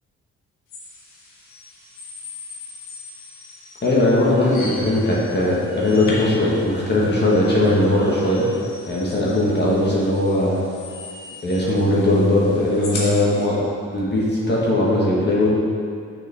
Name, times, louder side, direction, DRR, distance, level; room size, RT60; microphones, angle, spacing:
sound 1, 0.7-13.5, left 2 dB, 85° left, 1.6 m, -39 dB
voice 1, 3.8-8.5 8.9-10.6 11.4-13.5 13.9-15.5, left 1 dB, 35° left, -6 dB, 1.4 m, -19 dB
6.7 x 6.0 x 3.5 m, 2.3 s
cardioid pair, 90°, 30 cm